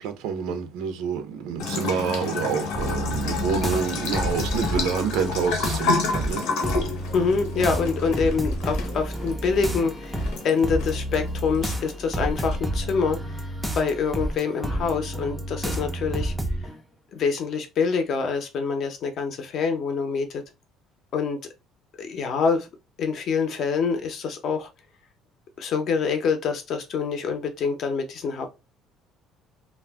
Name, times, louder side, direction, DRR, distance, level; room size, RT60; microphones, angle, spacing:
voice 1, 0.0-6.4 7.5-7.6, right 6 dB, 90° right, 0.5 m, -28 dB
Bathtub (filling or washing) / Trickle dribble, 1.6-12.6, left 4 dB, 75° left, 0.8 m, -30 dB
sound 1, 2.7-16.8, equal, ahead, 0.4 m, -30 dB
voice 2, 7.1-13.5 13.7-16.3 17.1-20.4 21.1-21.4 22.0-22.7 23.0-24.7 25.6-28.5, left 5 dB, 45° left, 0.6 m, -26 dB
2.3 x 2.0 x 3.4 m
cardioid pair, 170°, 0 cm